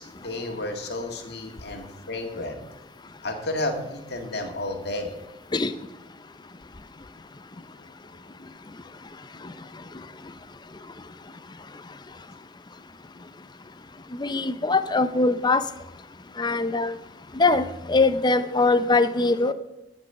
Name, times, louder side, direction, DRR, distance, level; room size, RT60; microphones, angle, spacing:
voice 1, 0.0-2.6 3.2-5.1, left 2 dB, 60° left, 3 dB, 1.8 m, -32 dB
voice 2, 14.2-15.6 16.4-16.9 17.3-19.5, left 3 dB, 25° left, 12 dB, 0.6 m, -22 dB
14.5 x 5.4 x 6.5 m, 1.0 s
head